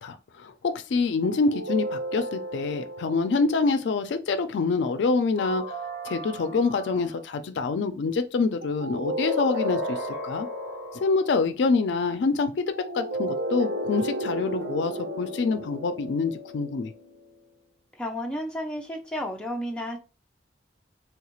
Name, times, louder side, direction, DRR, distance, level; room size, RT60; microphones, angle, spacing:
voice 1, 0.0-5.6 6.0-10.0 10.2-10.5 11.0-12.6 12.9-14.9 15.2-16.9, left 4 dB, 70° left, 0.4 m, -26 dB
sound 1, 1.2-3.7 5.4-7.2 8.6-11.3 12.7-17.2, equal, 90° right, 0.8 m, -33 dB
voice 2, 17.9-20.0, equal, 5° left, 0.5 m, -32 dB
3.4 x 2.4 x 3.0 m
head